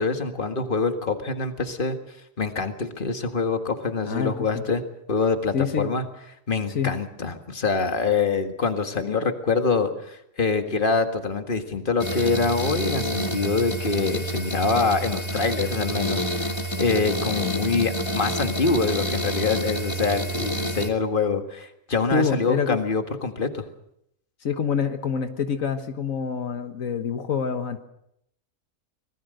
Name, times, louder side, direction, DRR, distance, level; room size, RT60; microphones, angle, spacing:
voice 1, 0.0-2.0 2.4-4.8 5.1-6.0 6.5-23.6, left 4 dB, 40° left, 6 dB, 2.0 m, -25 dB
voice 2, 4.0-4.6 5.5-6.0 6.7-6.9 22.1-22.8 24.4-27.8, left 6 dB, 85° left, 8 dB, 1.7 m, -26 dB
sound 1, 12.0-20.9, equal, 20° left, 2.1 m, -28 dB
25.0 x 20.5 x 6.5 m, 0.76 s
omnidirectional pair, 1.4 m